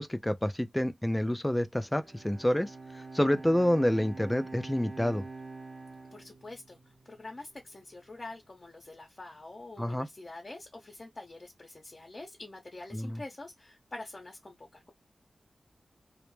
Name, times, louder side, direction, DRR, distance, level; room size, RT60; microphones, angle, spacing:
voice 1, 0.0-5.2 9.8-10.1 12.9-13.2, left 1 dB, 15° left, 0.4 m, -28 dB
Bowed string instrument, 1.8-7.3, right 3 dB, 55° right, 0.8 m, -46 dB
voice 2, 6.1-6.8 7.0-14.9, left 2 dB, 40° left, 0.8 m, -46 dB
2.1 x 2.0 x 3.1 m
wide cardioid pair, 60°, 0 cm